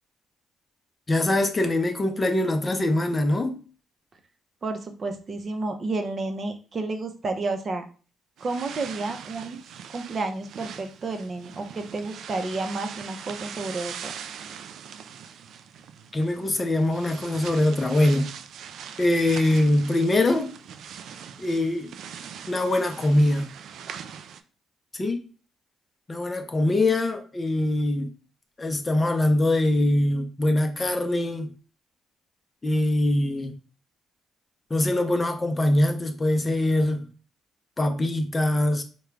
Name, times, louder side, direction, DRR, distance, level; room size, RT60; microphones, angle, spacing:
voice 1, 1.1-3.6 16.1-18.3 19.0-20.5 21.4-21.9 22.5-23.5 24.9-25.3 26.1-28.1 28.6-31.5 32.6-33.5 34.7-37.1 37.8-38.8, left 1 dB, 25° left, 0.6 m, -23 dB
voice 2, 4.6-7.9 8.4-9.6 9.9-14.1, right 3 dB, 40° right, 0.6 m, -31 dB
sound 1, 8.4-24.4, right 8 dB, 75° right, 0.3 m, -41 dB
3.7 x 2.2 x 3.2 m
cardioid pair, 90°, 0 cm